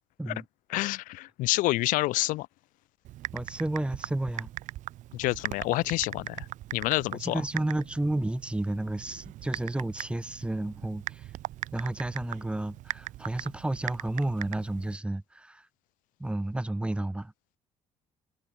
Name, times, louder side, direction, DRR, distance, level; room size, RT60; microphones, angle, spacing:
voice 1, 0.7-2.5 5.1-7.4, left 19 dB, 90° left, 0.7 m, -28 dB
Typing, 3.0-15.0, right 15 dB, 70° right, 0.7 m, -40 dB
voice 2, 3.3-4.5 7.1-11.3 11.7-15.7 16.2-17.3, right 1 dB, 10° right, 2.0 m, -31 dB
cardioid pair, 120°, 13 cm